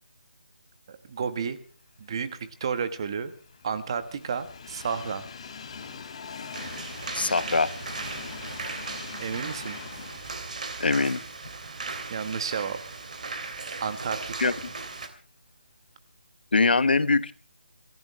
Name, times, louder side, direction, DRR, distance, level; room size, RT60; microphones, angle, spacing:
voice 1, 0.9-1.6 2.0-3.3 3.6-5.3 9.2-9.8 12.1-12.8 13.8-14.5, right 6 dB, 30° right, 11 dB, 1.3 m, -31 dB
Train, 2.4-12.6 13.0-13.1 14.2-14.3, left 5 dB, 35° left, 2.2 m, -43 dB
sound 1, 6.5-15.1, right 4 dB, 45° right, 3.0 m, -37 dB
voice 2, 7.1-7.7 10.8-11.2 14.4-14.5 16.5-17.3, left 3 dB, 65° left, 15 dB, 1.2 m, -22 dB
26.5 x 15.5 x 3.3 m, 0.37 s
figure-of-eight pair, 170°, 6 cm